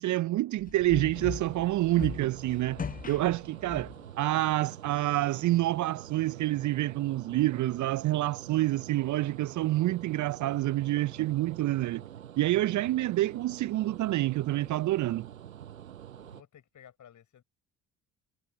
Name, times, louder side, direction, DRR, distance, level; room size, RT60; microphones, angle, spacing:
voice 1, 0.0-12.0 12.4-15.3, right 16 dB, 45° right, 0.7 m, -28 dB
sound 1, 0.6-4.1, left 6 dB, 20° left, 0.8 m, -39 dB
sound 2, 1.1-16.4, right 10 dB, 80° right, 6.5 m, -47 dB
voice 2, 16.2-17.4, left 9 dB, 45° left, 7.2 m, -55 dB
figure-of-eight pair, 50°, 41 cm